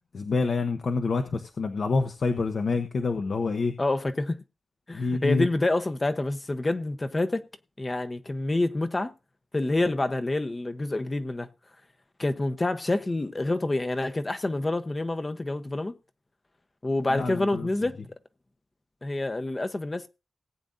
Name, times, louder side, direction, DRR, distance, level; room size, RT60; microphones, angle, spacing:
voice 1, 0.1-3.7 4.9-5.5 17.1-17.7, left 4 dB, 65° left, 1.0 m, -27 dB
voice 2, 3.8-4.4 4.9-7.4 7.8-9.1 9.5-11.5 12.2-16.0 16.8-18.0 19.0-20.1, left 2 dB, 25° left, 0.8 m, -27 dB
18.5 x 8.7 x 2.6 m
wide cardioid pair, 105°, 0 cm